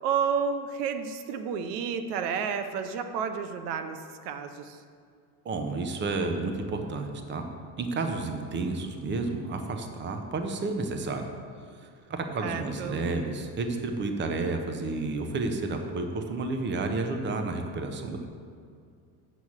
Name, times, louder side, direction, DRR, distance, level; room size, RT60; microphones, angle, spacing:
voice 1, 0.0-4.8 12.4-13.0, right 6 dB, 80° right, 8 dB, 0.9 m, -31 dB
voice 2, 5.4-7.4 7.8-11.2 11.6-18.3, right 3 dB, 25° right, 5 dB, 0.8 m, -31 dB
7.9 x 6.4 x 7.3 m, 2.3 s
cardioid pair, 140°, 48 cm